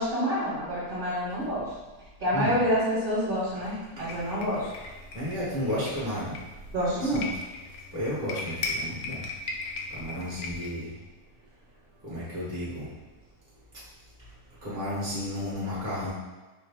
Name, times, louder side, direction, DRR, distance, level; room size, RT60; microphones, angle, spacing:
voice 1, 0.0-1.6 2.2-4.7 6.7-7.2, equal, 35° right, -10 dB, 1.2 m, -27 dB
sound 1, 4.1-10.7, left 3 dB, 70° left, 0.9 m, -38 dB
voice 2, 5.1-6.3 6.9-7.3 7.9-9.2 10.0-10.9 12.0-12.9 14.6-16.1, left 1 dB, 10° right, -10 dB, 0.8 m, -32 dB
5.2 x 2.3 x 3.4 m, 1.2 s
omnidirectional pair, 1.9 m